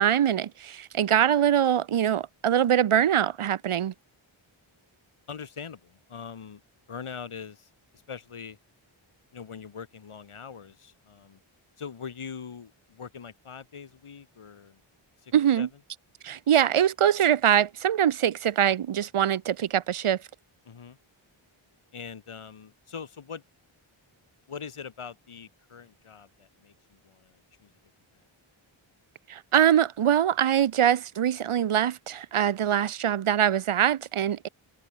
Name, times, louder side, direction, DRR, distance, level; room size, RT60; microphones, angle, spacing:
voice 1, 0.0-3.9 15.3-15.7 16.2-20.2 29.3-34.5, right 10 dB, 90° right, 1.1 m, -23 dB
voice 2, 5.3-6.6 6.9-7.7 8.1-8.6 9.3-11.4 11.8-14.8 15.2-15.7 20.6-21.0 21.9-23.4 24.5-27.7 28.1-28.2, left 6 dB, 85° left, 6.8 m, -42 dB
wide cardioid pair, 110°, 49 cm